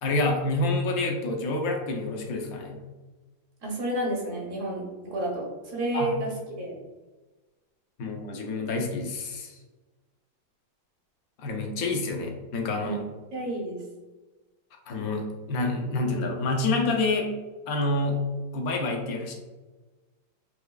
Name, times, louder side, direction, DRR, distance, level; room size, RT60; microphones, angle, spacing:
voice 1, 0.0-2.8 5.9-6.1 8.0-9.6 11.4-13.0 14.9-17.3 17.7-18.2 18.5-19.3, left 2 dB, 65° left, 1 dB, 0.9 m, -28 dB
voice 2, 3.6-6.8 12.8-12.9 13.3-13.8, right 1 dB, 55° right, -2 dB, 0.9 m, -31 dB
4.5 x 2.3 x 2.3 m, 1.2 s
omnidirectional pair, 2.0 m